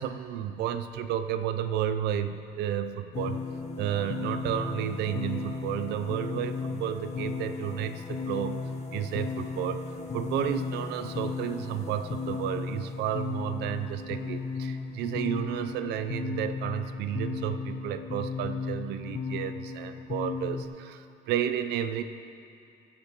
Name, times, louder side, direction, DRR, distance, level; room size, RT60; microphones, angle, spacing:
voice 1, 0.0-3.5 3.8-9.8 10.1-22.0, right 10 dB, 80° right, 10 dB, 0.7 m, -32 dB
sound 1, 3.1-20.6, left 4 dB, 45° left, 1.5 m, -35 dB
23.0 x 8.5 x 3.7 m, 2.6 s
cardioid pair, 110°, 17 cm